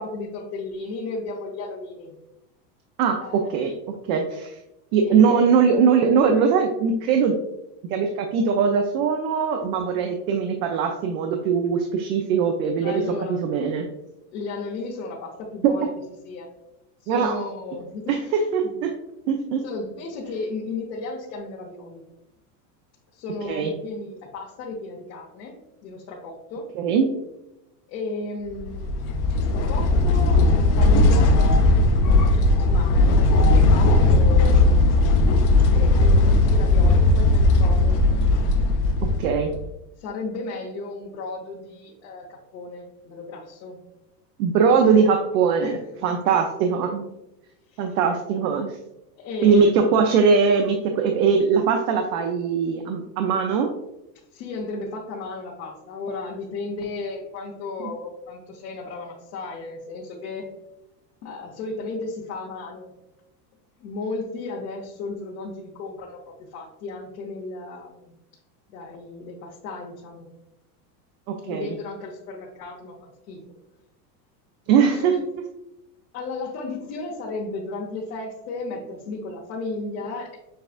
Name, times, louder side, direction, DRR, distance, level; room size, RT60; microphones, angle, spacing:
voice 1, 0.0-2.2 3.2-3.6 5.0-5.6 12.8-13.5 14.3-15.9 16.2-16.5 17.0-18.4 19.6-22.0 23.1-25.5 25.8-26.7 27.9-28.9 29.3-31.6 32.0-35.0 35.7-38.0 40.0-43.8 45.6-45.8 47.7-48.0 49.2-50.0 54.3-60.5 61.2-62.9 63.8-68.1 68.7-70.3 71.4-73.4 74.9-75.2 76.1-80.4, left 3 dB, 70° left, -3 dB, 1.1 m, -34 dB
voice 2, 3.0-4.6 4.9-7.3 7.9-13.0 13.4-13.9 15.6-15.7 17.1-17.4 18.1-18.2 18.5-18.9 19.3-19.6 23.4-23.7 26.8-27.1 39.2-39.5 44.4-47.1 47.8-48.7 49.4-53.7 71.3-71.8 74.7-75.1, right 6 dB, 65° right, 4 dB, 0.7 m, -21 dB
sound 1, 28.6-39.6, left 2 dB, 40° left, 0.6 m, -17 dB
6.5 x 2.4 x 2.4 m, 0.90 s
supercardioid pair, 115°, 49 cm